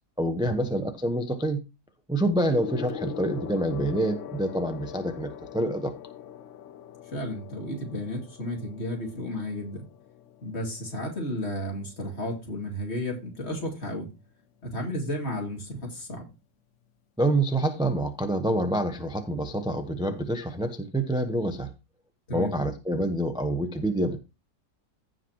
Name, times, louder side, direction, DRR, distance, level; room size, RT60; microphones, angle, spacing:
voice 1, 0.2-1.6 2.1-5.9 17.2-21.7 22.3-24.2, right 1 dB, 5° right, 0.5 m, -27 dB
Gong, 2.5-12.2 13.2-13.5, left 9 dB, 65° left, 0.8 m, -41 dB
voice 2, 7.1-9.8 10.4-14.1 14.6-16.3 22.3-22.5, left 1 dB, 40° left, 2.6 m, -33 dB
15.5 x 5.4 x 2.9 m
omnidirectional pair, 1.8 m